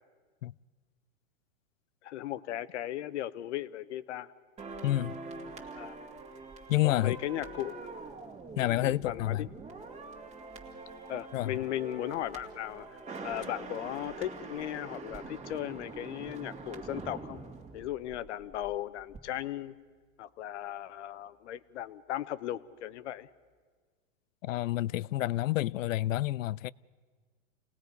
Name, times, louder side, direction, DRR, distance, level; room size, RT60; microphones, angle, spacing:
voice 1, 2.0-4.3 5.7-6.0 6.8-7.7 8.6-9.5 11.1-17.4 17.7-19.7 20.2-23.3, left 12 dB, 60° left, 0.9 m, -37 dB
sound 1, 4.6-18.7 19.0-19.2, right 3 dB, 15° right, 2.0 m, -44 dB
voice 2, 4.8-5.2 6.7-7.2 8.6-9.5 11.3-11.5 24.4-26.7, left 15 dB, 80° left, 0.5 m, -29 dB
29.0 x 19.0 x 5.3 m
hypercardioid pair, 145°, 38 cm